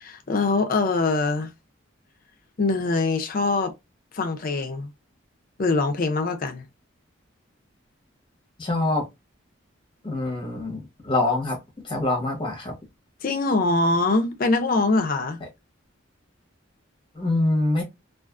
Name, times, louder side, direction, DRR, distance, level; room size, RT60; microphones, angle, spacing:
voice 1, 0.0-1.5 2.6-3.7 4.1-4.9 5.6-6.6 13.2-15.4, left 3 dB, 45° left, 0.4 m, -23 dB
voice 2, 8.6-9.1 10.0-11.6 11.8-12.7 17.1-17.8, left 2 dB, 25° left, 0.9 m, -25 dB
2.4 x 2.4 x 2.3 m
head